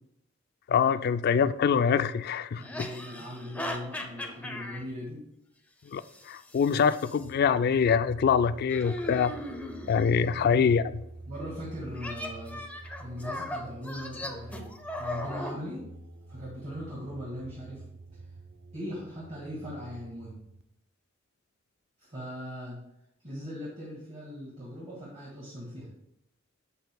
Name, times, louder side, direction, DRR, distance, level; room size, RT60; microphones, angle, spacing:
voice 1, 0.7-2.6 5.9-9.3 9.9-10.8, left 6 dB, 50° left, 0.3 m, -24 dB
sound 1, 1.3-1.4 2.6-4.8 6.1-7.2 8.7-10.2 11.9-15.6, left 1 dB, 10° left, 0.6 m, -38 dB
voice 2, 2.6-5.2 10.1-10.8 11.3-12.6 13.0-15.9 16.3-17.8 18.7-20.4 22.0-22.8 23.2-25.9, equal, 35° right, 1.9 m, -40 dB
sound 2, 7.2-20.6, right 2 dB, 55° right, 0.6 m, -48 dB
7.8 x 7.8 x 2.2 m
head